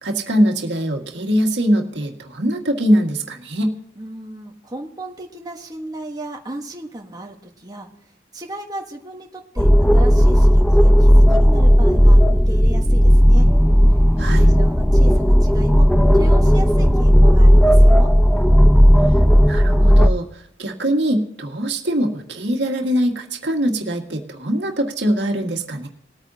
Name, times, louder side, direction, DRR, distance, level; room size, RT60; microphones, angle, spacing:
voice 1, 0.0-3.7 14.2-14.5 19.4-25.9, equal, 85° right, 3 dB, 1.9 m, -22 dB
voice 2, 3.9-7.9 8.3-13.5 14.2-15.9 16.1-18.1, right 1 dB, 20° right, 1 dB, 1.3 m, -35 dB
sound 1, 9.6-20.1, equal, 5° left, 0.6 m, -13 dB
20.5 x 8.9 x 2.8 m, 0.75 s
head